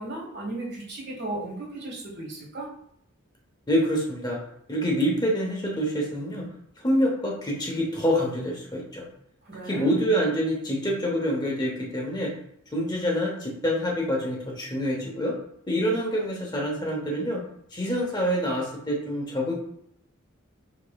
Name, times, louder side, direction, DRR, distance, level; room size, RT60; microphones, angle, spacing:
voice 1, 0.0-2.7 9.4-10.0, right 2 dB, 50° right, -3 dB, 1.5 m, -35 dB
voice 2, 3.7-4.4 4.7-6.5 6.8-9.0 9.6-12.3 12.7-15.3 15.7-17.4 17.7-19.5, equal, 20° left, -2 dB, 0.9 m, -26 dB
5.0 x 4.3 x 2.3 m, 0.71 s
head